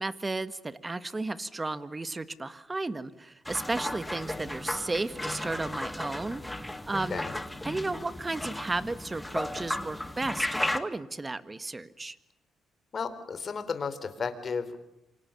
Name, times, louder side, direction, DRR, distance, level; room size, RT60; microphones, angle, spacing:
voice 1, 0.0-7.2 7.6-12.2, right 2 dB, 20° right, 13 dB, 1.6 m, -34 dB
sound 1, 3.5-10.8, left 1 dB, 10° left, 2.0 m, -35 dB
voice 2, 6.9-7.4 12.9-14.8, left 5 dB, 45° left, 11 dB, 3.8 m, -34 dB
27.5 x 25.0 x 7.1 m, 0.84 s
cardioid pair, 90°, 0 cm